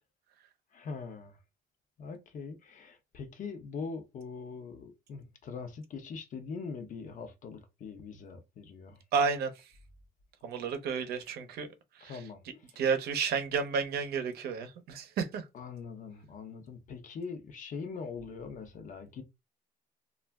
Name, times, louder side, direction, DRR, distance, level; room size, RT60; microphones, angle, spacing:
voice 1, 0.7-1.4 2.0-9.0 12.0-12.4 15.5-19.2, left 5 dB, 50° left, 0.7 m, -42 dB
voice 2, 9.1-9.5 10.4-11.7 12.0-12.2 12.8-15.5, right 5 dB, 70° right, 0.7 m, -31 dB
2.4 x 2.1 x 3.4 m
cardioid pair, 110°, 17 cm